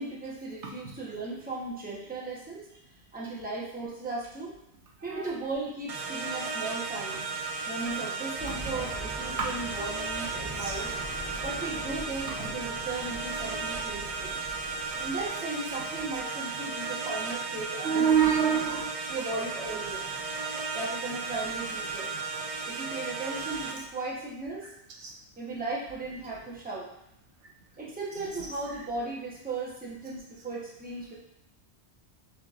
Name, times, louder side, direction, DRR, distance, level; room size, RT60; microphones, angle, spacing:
voice 1, 0.0-2.7 3.1-4.5 5.0-7.3 7.7-10.9 11.4-14.4 15.0-18.3 19.1-20.1 20.7-22.2 22.6-24.7 25.4-26.9 27.8-31.2, right 3 dB, 10° right, -6 dB, 0.8 m, -36 dB
voice 2, 5.0-5.3 7.5-7.6 9.4-9.5 10.6-10.9 12.4-12.5 17.8-19.2 25.0-25.1, right 7 dB, 80° right, -2 dB, 1.1 m, -27 dB
sound 1, 5.9-23.7, right 4 dB, 60° right, 0.4 m, -35 dB
sound 2, 8.4-15.3, equal, 30° left, 0.7 m, -42 dB
6.0 x 2.9 x 2.4 m, 0.80 s
omnidirectional pair, 1.2 m